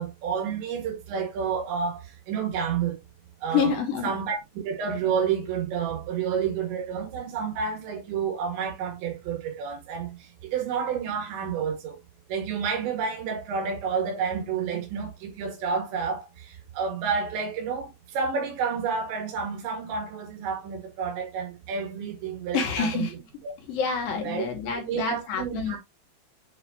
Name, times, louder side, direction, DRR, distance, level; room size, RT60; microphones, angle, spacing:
voice 1, 0.0-2.0 2.3-3.0 3.4-3.7 4.0-10.2 10.4-12.0 12.3-23.2 23.4-23.6 24.2-24.5 24.9-25.8, right 6 dB, 85° right, 4.2 m, -30 dB
voice 2, 3.5-4.1 22.5-23.1 23.7-25.8, left 6 dB, 65° left, 2.7 m, -27 dB
8.4 x 4.8 x 2.8 m
omnidirectional pair, 5.0 m